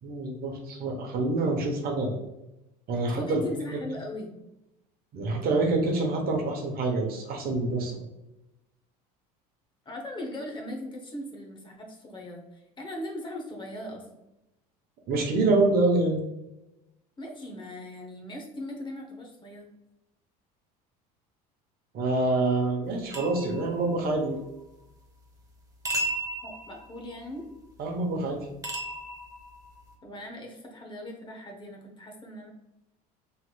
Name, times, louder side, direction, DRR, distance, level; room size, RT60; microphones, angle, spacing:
voice 1, 0.0-2.2 2.9-3.4 5.1-8.0 15.1-16.2 21.9-24.4 27.8-28.5, right 2 dB, 50° right, 2 dB, 0.9 m, -26 dB
voice 2, 3.1-4.3 9.9-14.0 17.2-19.7 26.4-27.5 30.0-32.5, left 1 dB, 25° left, 0 dB, 0.8 m, -39 dB
sound 1, 23.1-24.4 25.8-27.3 28.6-29.9, right 1 dB, 15° right, 0.7 m, -35 dB
3.3 x 2.9 x 2.3 m, 0.92 s
hypercardioid pair, 85°, 20 cm